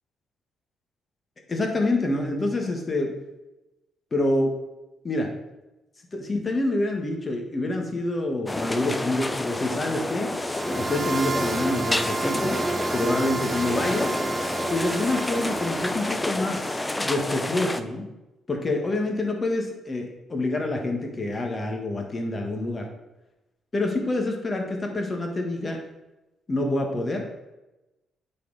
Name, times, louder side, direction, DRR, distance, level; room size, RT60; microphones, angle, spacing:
voice 1, 1.5-3.1 4.1-4.5 5.0-5.3 6.1-10.3 10.7-12.6 12.9-14.1 14.7-18.1 18.5-22.9 23.7-25.8 26.5-27.2, left 2 dB, 30° left, 2 dB, 1.5 m, -27 dB
sound 1, 8.5-17.8, left 1 dB, 15° left, 0.5 m, -29 dB
sound 2, 10.5-16.3, right 4 dB, 40° right, 0.6 m, -31 dB
9.4 x 4.3 x 4.0 m, 1.0 s
cardioid pair, 90°, 0 cm